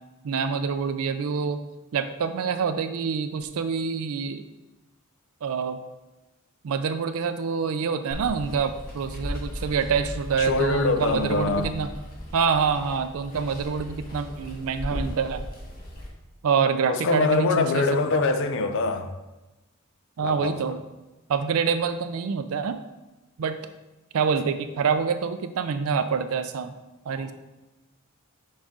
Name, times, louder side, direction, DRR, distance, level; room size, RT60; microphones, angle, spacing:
voice 1, 0.2-1.6 1.9-4.4 5.4-5.8 6.6-11.9 12.3-15.5 16.4-17.8 18.1-18.2 20.2-20.8 21.3-22.8 23.4-23.6 24.1-26.7 27.1-27.3, right 6 dB, 70° right, 9 dB, 0.4 m, -26 dB
Water, 8.1-16.1, equal, 40° left, 1.5 m, -37 dB
voice 2, 10.4-11.8 16.9-19.1 20.2-20.8 27.1-27.2, left 3 dB, 60° left, 8 dB, 0.6 m, -24 dB
6.4 x 4.8 x 3.7 m, 1.1 s
head